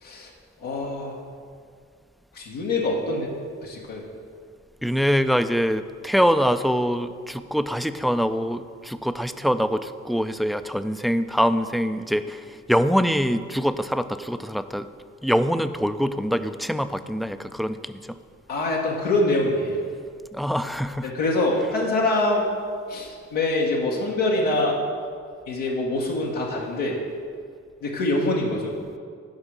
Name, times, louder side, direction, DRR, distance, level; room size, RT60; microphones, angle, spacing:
voice 1, 0.6-1.2 2.3-3.3 3.6-4.0 18.5-19.8 21.0-22.5 22.9-24.8 25.5-26.9 27.8-28.7, left 2 dB, 90° left, -3 dB, 1.1 m, -24 dB
voice 2, 4.8-14.9 15.2-18.2 20.3-21.1, equal, ahead, 11 dB, 0.3 m, -24 dB
7.9 x 5.2 x 5.9 m, 2.1 s
supercardioid pair, 45°, 33 cm